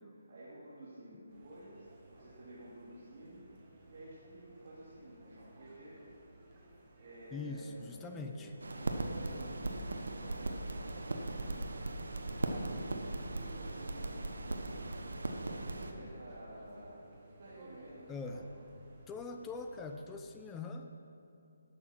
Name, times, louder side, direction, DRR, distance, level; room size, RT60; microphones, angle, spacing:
voice 1, 0.0-1.9 2.1-3.5 3.9-6.0 7.0-11.7 12.4-14.7 15.4-17.1 17.4-18.4, right 1 dB, 50° right, -9 dB, 2.4 m, -52 dB
sound 1, 1.3-20.2, right 1 dB, 30° right, 1.8 m, -59 dB
voice 2, 7.3-8.5 18.1-18.4 19.1-20.9, left 3 dB, 10° left, 4 dB, 0.5 m, -42 dB
sound 2, 8.6-15.9, right 2 dB, 75° right, 1.0 m, -38 dB
12.0 x 6.9 x 5.7 m, 2.6 s
figure-of-eight pair, 150°, 0 cm